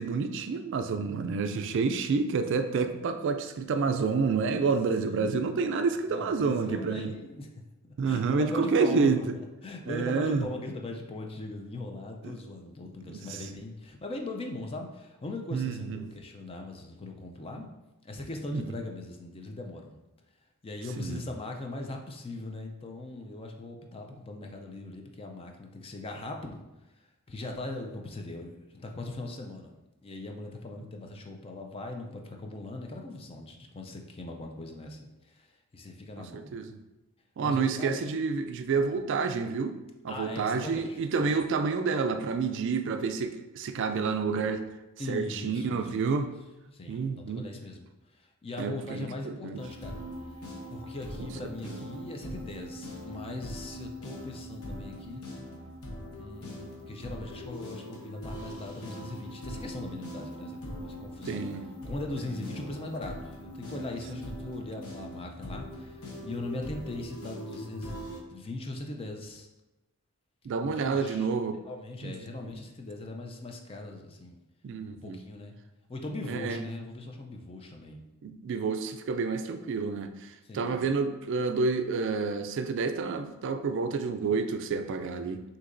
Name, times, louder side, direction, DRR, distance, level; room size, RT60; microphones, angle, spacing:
voice 1, 0.0-7.2 8.0-9.2 9.9-10.5 12.2-12.4 13.0-13.4 15.5-16.0 18.5-18.6 21.0-21.2 36.2-36.8 37.4-39.8 40.0-44.6 45.1-46.3 46.9-47.5 48.6-49.6 51.2-51.3 51.6-51.8 61.3-61.7 62.2-62.4 70.4-71.6 72.0-72.5 74.6-75.2 76.3-76.6 78.2-85.4, right 4 dB, 60° right, 8 dB, 0.3 m, -29 dB
voice 2, 5.0-5.7 6.1-7.5 7.8-9.1 9.6-17.7 18.0-19.9 20.6-26.6 27.3-36.5 37.4-38.0 40.1-41.4 45.0-45.9 46.2-46.3 46.7-47.9 48.1-50.0 50.7-55.2 56.2-61.4 61.9-69.5 70.8-71.3 71.7-74.4 75.0-75.6 75.9-78.0 80.4-80.8, left 2 dB, 25° left, 3 dB, 0.4 m, -40 dB
sound 1, 49.6-68.2, equal, 80° left, 1.0 m, -41 dB
6.3 x 2.8 x 2.6 m, 1.0 s
head